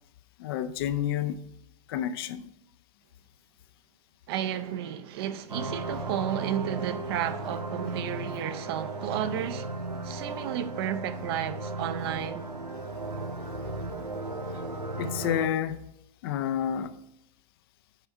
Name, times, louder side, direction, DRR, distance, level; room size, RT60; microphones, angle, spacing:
voice 1, 0.4-1.4 1.9-2.5 14.9-15.9 16.2-16.9, left 10 dB, 40° left, 0.4 m, -29 dB
voice 2, 4.3-9.7 10.0-12.5, right 10 dB, 40° right, 0.5 m, -32 dB
sound 1, 5.5-15.5, right 2 dB, 85° right, 0.9 m, -35 dB
9.2 x 3.5 x 6.6 m
figure-of-eight pair, 105°, 20 cm